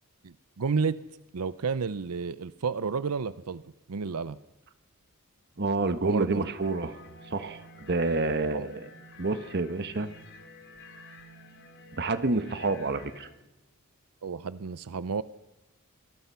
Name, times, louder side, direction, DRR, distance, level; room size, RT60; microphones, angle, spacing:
voice 1, 0.2-1.0 1.3-3.6 3.9-4.4 6.0-6.4 8.5-8.7 14.2-15.2, right 5 dB, 85° right, 15 dB, 0.6 m, -31 dB
voice 2, 5.6-7.0 7.3-8.9 9.2-10.1 12.0-13.3, right 3 dB, 50° right, 10 dB, 1.3 m, -28 dB
sound 1, 6.6-13.3, left 2 dB, 55° left, 2.9 m, -50 dB
26.0 x 19.0 x 5.7 m, 1.0 s
head